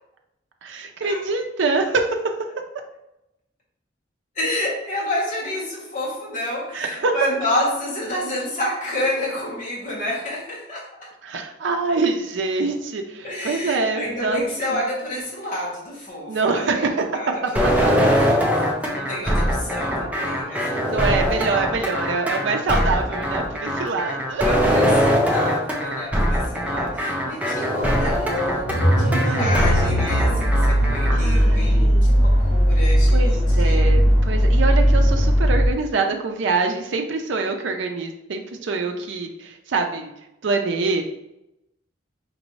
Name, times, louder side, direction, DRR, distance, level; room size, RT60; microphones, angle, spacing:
voice 1, 0.6-2.2 6.7-7.2 11.2-14.8 16.3-17.7 20.5-24.5 28.9-30.1 31.1-32.1 33.1-40.1 40.4-41.0, right 3 dB, 75° right, 4 dB, 0.5 m, -25 dB
voice 2, 4.3-10.9 13.2-16.9 17.1-18.6 18.8-20.9 24.4-33.9, left 1 dB, 40° left, -5 dB, 1.3 m, -29 dB
sound 1, 17.6-31.2, equal, 10° right, 0.5 m, -22 dB
sound 2, 28.7-35.7, equal, 75° left, 1.5 m, -18 dB
5.1 x 2.6 x 3.1 m, 0.87 s
head